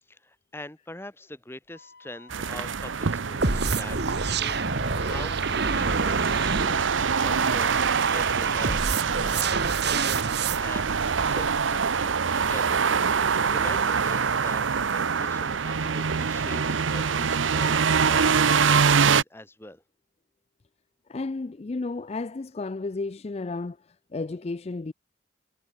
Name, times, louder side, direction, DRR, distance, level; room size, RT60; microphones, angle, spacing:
voice 1, 0.1-4.0 4.2-8.9 9.3-9.5 10.6-14.6 14.9-19.8, left 1 dB, 15° left, 1.4 m, -43 dB
Wind instrument woodwind instrument, 1.7-5.3, left 4 dB, 55° left, 5.6 m, -51 dB
sound 1, 2.3-19.2, right 6 dB, 85° right, 0.8 m, -25 dB
sound 2, 3.4-10.6, right 4 dB, 60° right, 1.7 m, -28 dB
voice 2, 21.1-23.8 24.1-24.9, left 3 dB, 35° left, 0.4 m, -32 dB
head